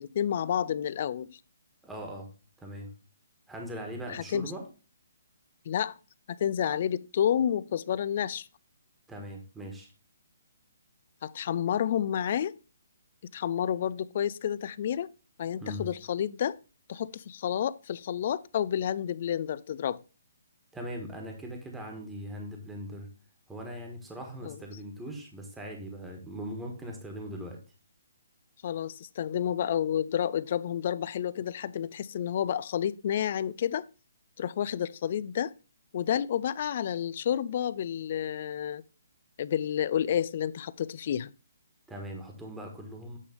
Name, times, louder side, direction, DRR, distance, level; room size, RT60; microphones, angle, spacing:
voice 1, 0.0-1.4 4.1-4.5 5.7-6.0 6.3-8.5 11.2-12.5 13.3-15.1 15.4-16.6 16.9-20.0 24.4-24.6 28.6-33.9 34.4-35.5 35.9-38.8 39.4-41.3, left 9 dB, 45° left, 0.4 m, -30 dB
voice 2, 1.8-2.3 2.6-2.9 3.5-4.6 9.1-9.9 15.6-15.9 20.7-23.1 23.5-27.6 41.9-43.2, equal, 5° right, 1.4 m, -40 dB
8.4 x 3.4 x 5.1 m
hypercardioid pair, 155°, 0 cm